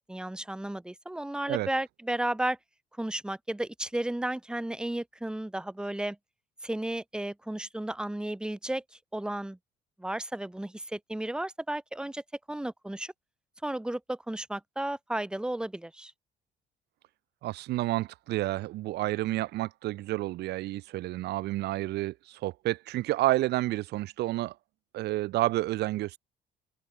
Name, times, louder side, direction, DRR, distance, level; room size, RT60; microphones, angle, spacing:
voice 1, 0.1-2.6 3.0-6.2 6.6-9.6 10.0-12.2 12.5-13.1 13.6-16.1, right 1 dB, 5° right, 1.3 m, -33 dB
voice 2, 17.4-24.6 24.9-26.2, right 17 dB, 80° right, 2.2 m, -30 dB
open air
cardioid pair, 110°, 17 cm